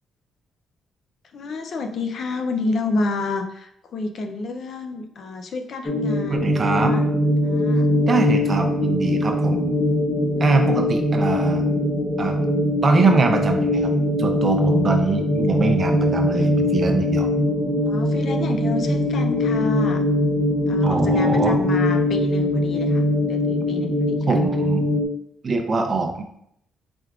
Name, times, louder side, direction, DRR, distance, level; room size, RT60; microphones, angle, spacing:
voice 1, 1.3-7.0 7.4-7.9 10.5-10.7 17.9-20.0 20.7-24.2, left 3 dB, 60° left, 6 dB, 0.5 m, -29 dB
sound 1, 5.9-25.1, left 1 dB, 15° left, 0.8 m, -21 dB
voice 2, 6.3-7.0 8.1-9.7 10.4-11.6 12.2-12.5 12.8-13.9 14.2-17.3 20.8-21.7 24.3-24.9 25.4-26.2, right 4 dB, 40° right, 5 dB, 0.5 m, -23 dB
4.5 x 3.4 x 2.4 m, 0.72 s
cardioid pair, 90°, 0 cm